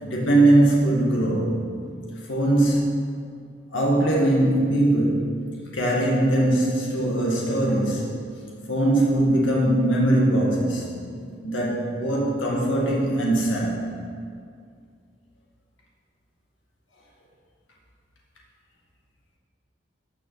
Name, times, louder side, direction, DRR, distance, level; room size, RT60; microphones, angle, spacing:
voice 1, 0.0-1.6 2.3-3.0 3.7-5.4 5.6-8.1 8.7-10.9 11.4-13.9, right 1 dB, 90° left, -3 dB, 2.1 m, -21 dB
14.0 x 6.8 x 5.9 m, 2.2 s
head